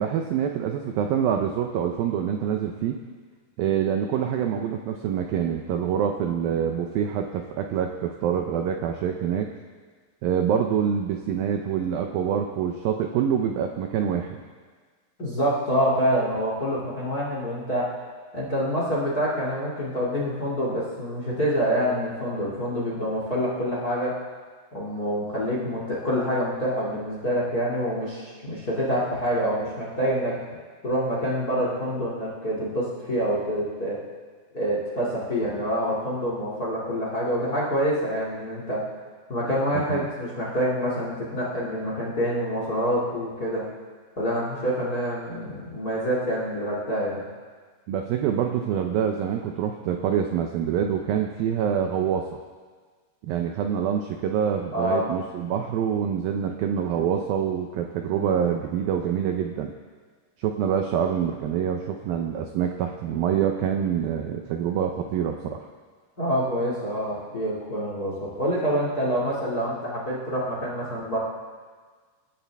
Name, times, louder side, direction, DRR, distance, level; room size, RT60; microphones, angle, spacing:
voice 1, 0.0-3.0 3.6-9.5 10.2-14.4 39.9-40.1 47.9-52.4 53.2-59.7 60.4-65.7, right 8 dB, 90° right, 4 dB, 2.0 m, -26 dB
voice 2, 15.2-18.0 18.3-24.2 24.7-30.4 30.8-34.0 34.5-38.8 39.3-43.7 44.2-47.2 54.7-55.1 66.2-71.2, equal, 30° left, -4 dB, 1.9 m, -26 dB
25.5 x 13.0 x 3.5 m, 1.5 s
omnidirectional pair, 5.2 m